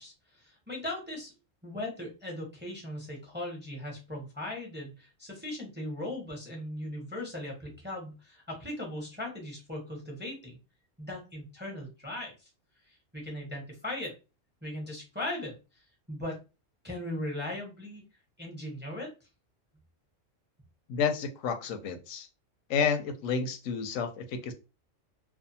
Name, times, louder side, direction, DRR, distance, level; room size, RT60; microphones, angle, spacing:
voice 1, 0.0-1.3 1.6-10.5 11.0-12.5 13.1-14.1 14.6-15.5 16.1-16.4 16.8-18.0 18.4-19.1, left 1 dB, 10° right, -1 dB, 0.6 m, -38 dB
voice 2, 20.9-22.3 22.7-24.5, left 6 dB, 85° left, 8 dB, 1.0 m, -30 dB
2.5 x 2.3 x 2.6 m, 0.30 s
omnidirectional pair, 1.3 m